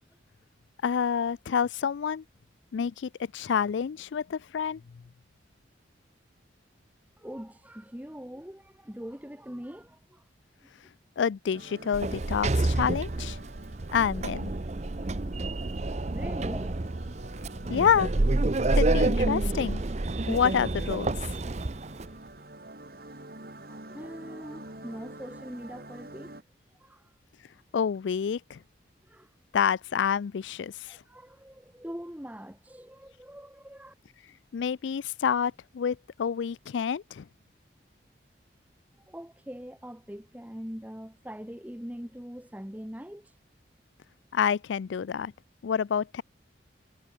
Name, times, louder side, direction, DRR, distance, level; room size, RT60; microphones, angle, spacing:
voice 1, 0.8-2.2 2.7-4.8 11.2-13.4 13.9-14.5 17.7-18.1 18.7-19.8 20.3-21.1 27.7-28.6 29.5-31.0 34.5-37.3 44.3-45.3 45.6-46.2, left 7 dB, 75° left, 0.4 m, -28 dB
voice 2, 7.2-10.2 10.6-10.7 16.1-16.8 23.7-26.4 26.8-27.1 29.0-29.3 30.9-33.9 39.1-43.3, equal, 10° right, 1.3 m, -42 dB
sound 1, 11.5-26.4, right 1 dB, 50° right, 4.0 m, -47 dB
Sliding door, 11.9-22.1, right 2 dB, 35° right, 0.7 m, -28 dB
head